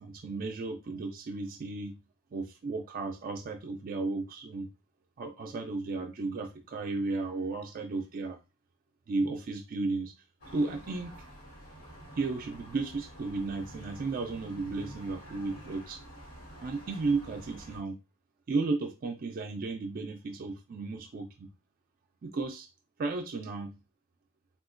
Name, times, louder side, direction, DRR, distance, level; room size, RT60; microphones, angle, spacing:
voice 1, 0.0-2.0 2.3-4.7 5.2-8.4 9.1-10.1 10.5-11.2 12.2-16.0 16.6-18.0 18.5-21.5 22.2-22.7 23.0-23.8, right 3 dB, 40° right, 4 dB, 0.3 m, -34 dB
sound 1, 10.4-17.8, right 1 dB, 80° left, 1.2 m, -48 dB
3.6 x 2.3 x 2.4 m, 0.26 s
head